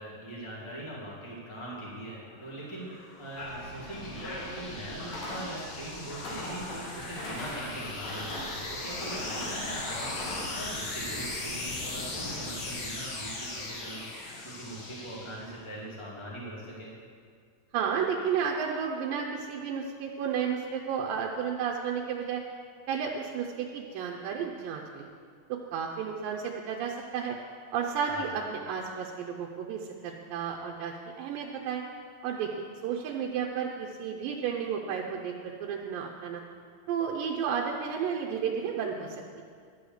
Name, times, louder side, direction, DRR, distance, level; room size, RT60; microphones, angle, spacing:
voice 1, 0.0-16.9 28.1-28.3, right 1 dB, 10° left, -6 dB, 1.8 m, -41 dB
sound 1, 2.3-15.8, left 2 dB, 55° left, 1.5 m, -39 dB
sound 2, 3.4-10.7, left 1 dB, 70° left, 3.5 m, -40 dB
voice 2, 17.7-22.4 22.9-25.1 25.5-27.4 27.7-31.8 32.2-32.5 32.8-36.4 36.9-39.4, right 7 dB, 85° right, 0 dB, 2.4 m, -32 dB
11.5 x 4.9 x 7.8 m, 2.1 s
omnidirectional pair, 3.9 m